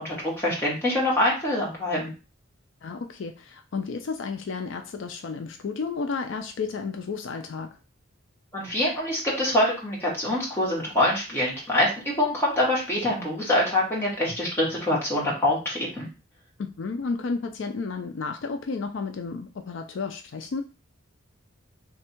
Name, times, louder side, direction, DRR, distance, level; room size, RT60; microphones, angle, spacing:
voice 1, 0.0-2.1 8.5-16.1, left 1 dB, 10° left, 1.4 m, -25 dB
voice 2, 2.8-7.8 16.6-20.6, left 4 dB, 70° left, 0.4 m, -32 dB
3.4 x 2.3 x 4.3 m
head